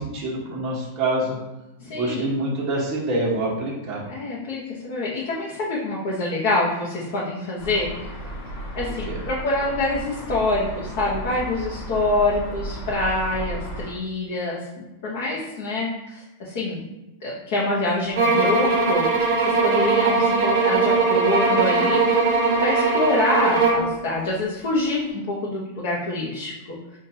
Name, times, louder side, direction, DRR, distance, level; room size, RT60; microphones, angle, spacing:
voice 1, 0.0-1.4 1.9-4.0 8.8-9.2, right 2 dB, 20° right, -6 dB, 1.2 m, -26 dB
voice 2, 1.8-2.2 4.1-8.2 8.8-14.6 15.0-16.8 17.2-27.0, left 2 dB, 50° left, -6 dB, 0.9 m, -26 dB
sound 1, 7.6-13.9, right 1 dB, 15° left, 0.9 m, -34 dB
sound 2, 18.1-23.9, right 3 dB, 55° right, 1.1 m, -20 dB
5.7 x 2.5 x 2.7 m, 1.0 s
supercardioid pair, 170°, 0 cm